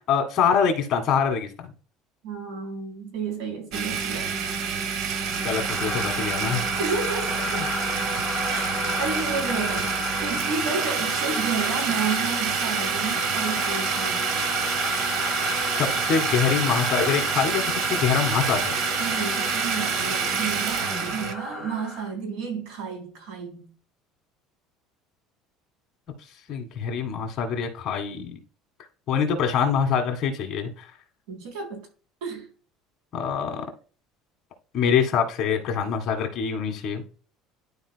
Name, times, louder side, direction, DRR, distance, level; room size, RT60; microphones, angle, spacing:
voice 1, 0.1-1.7 5.4-6.6 7.5-7.7 15.8-18.7 26.5-28.4 29.1-30.8 33.1-33.6 34.7-37.0, left 7 dB, 35° left, 1.8 m, -25 dB
voice 2, 2.2-4.3 6.8-8.0 8.4-14.3 19.0-23.7 31.3-31.9 32.2-32.5, right 5 dB, 80° right, 3.5 m, -32 dB
Domestic sounds home sounds, 3.7-21.3, right 6 dB, 55° right, 0.9 m, -28 dB
sound 1, 5.1-22.1, left 1 dB, 5° right, 1.2 m, -31 dB
12.0 x 4.6 x 2.3 m
cardioid pair, 175°, 0 cm